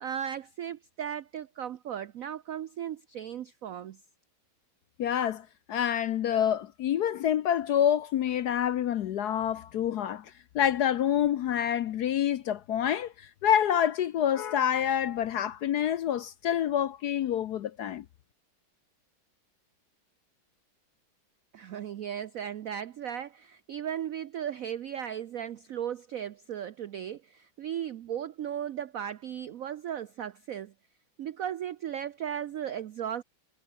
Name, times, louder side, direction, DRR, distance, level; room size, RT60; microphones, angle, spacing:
voice 1, 0.0-4.0 21.5-30.7 31.2-33.2, right 9 dB, 75° right, 0.7 m, -36 dB
voice 2, 5.0-18.0, left 10 dB, 65° left, 1.0 m, -27 dB
omnidirectional pair, 2.2 m